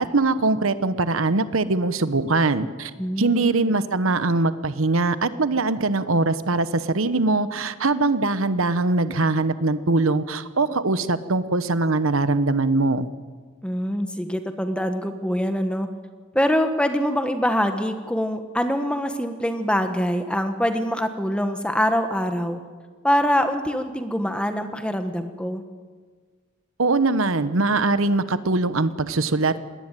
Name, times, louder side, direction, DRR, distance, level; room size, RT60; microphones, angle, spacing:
voice 1, 0.0-2.9 3.2-13.1 26.8-29.6, right 3 dB, 70° right, 13 dB, 1.0 m, -22 dB
voice 2, 3.0-3.7 13.6-15.9 16.3-22.6 23.0-25.6, equal, 5° left, 7 dB, 1.3 m, -24 dB
20.5 x 18.5 x 9.1 m, 1.5 s
head